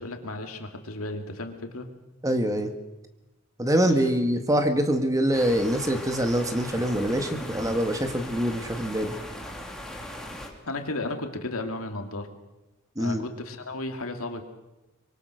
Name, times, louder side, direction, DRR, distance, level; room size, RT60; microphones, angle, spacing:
voice 1, 0.0-1.9 10.7-12.3 13.0-14.4, left 2 dB, 75° left, 5 dB, 2.5 m, -34 dB
voice 2, 2.2-2.7 3.6-9.2 12.9-13.2, equal, 15° right, 7 dB, 1.7 m, -24 dB
sound 1, 5.3-10.5, left 1 dB, 5° left, 2.9 m, -39 dB
25.0 x 23.5 x 6.4 m, 1.0 s
head